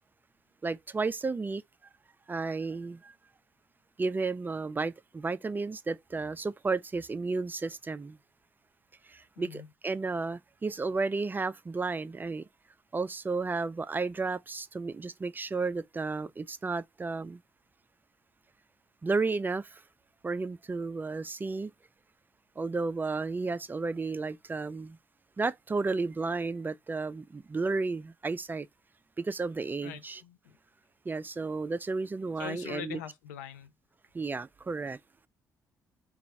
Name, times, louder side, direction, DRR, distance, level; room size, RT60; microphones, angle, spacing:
voice 1, 0.6-1.6 2.3-3.1 4.0-8.2 9.0-12.4 12.9-17.4 19.0-19.8 20.2-21.7 22.6-25.0 25.4-28.7 29.2-30.2 31.1-33.0 34.1-35.0, right 3 dB, 20° right, 0.3 m, -32 dB
voice 2, 9.4-9.7 29.8-30.6 32.4-33.7, left 9 dB, 75° left, 0.5 m, -42 dB
3.9 x 2.3 x 4.3 m
figure-of-eight pair, 40°, 9 cm